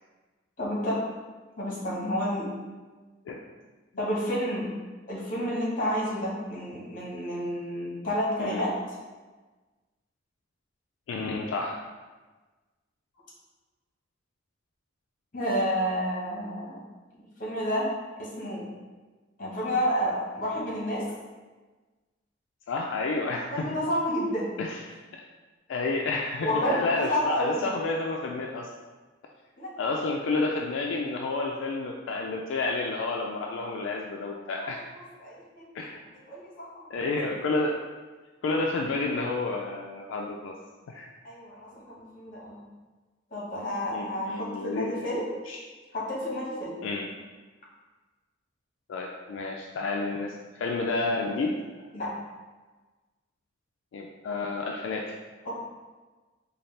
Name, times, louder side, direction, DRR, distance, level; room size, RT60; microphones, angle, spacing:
voice 1, 0.6-1.0 1.6-2.5 4.0-4.7 5.1-8.7 15.3-16.8 17.4-17.9 18.2-18.6 19.4-21.0 23.5-24.6 26.4-27.7 29.6-30.0 34.9-35.6 36.3-36.8 41.2-42.6 43.3-45.3 45.9-46.8 51.9-52.1 55.4-55.5, equal, 45° left, -5 dB, 1.0 m, -30 dB
voice 2, 11.1-11.8 22.7-23.7 24.6-25.2 25.7-28.7 29.8-34.8 35.7-36.0 36.9-37.7 38.4-40.5 40.9-41.1 43.9-45.1 45.5-45.6 46.8-47.1 48.9-51.6 53.9-55.2, left 3 dB, 75° left, 0 dB, 0.3 m, -30 dB
4.1 x 2.3 x 3.2 m, 1.3 s
head